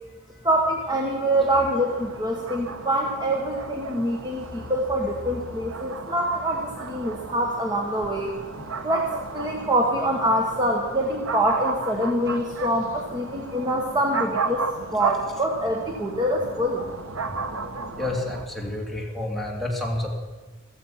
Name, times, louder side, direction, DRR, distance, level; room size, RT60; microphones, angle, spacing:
voice 1, 0.4-8.3 8.8-14.6 14.9-16.8, right 1 dB, 20° right, 0 dB, 1.5 m, -25 dB
sound 1, 1.3-18.5, right 4 dB, 75° right, 1.2 m, -34 dB
voice 2, 18.0-20.1, left 1 dB, ahead, -2 dB, 2.8 m, -29 dB
15.0 x 14.5 x 5.8 m, 1.3 s
head